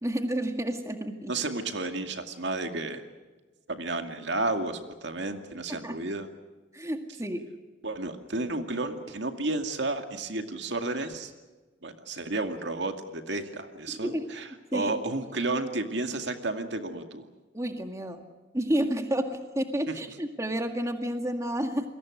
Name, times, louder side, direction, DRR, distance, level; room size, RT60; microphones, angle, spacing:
voice 1, 0.0-1.4 5.7-6.0 6.7-7.5 13.9-14.3 14.7-15.0 17.5-18.3 18.5-21.9, right 1 dB, 15° right, 6 dB, 1.9 m, -30 dB
voice 2, 1.3-3.0 3.7-6.3 7.8-11.3 11.8-17.2 19.9-20.0, right 2 dB, 65° right, 6 dB, 2.3 m, -32 dB
28.5 x 22.5 x 6.4 m, 1.3 s
head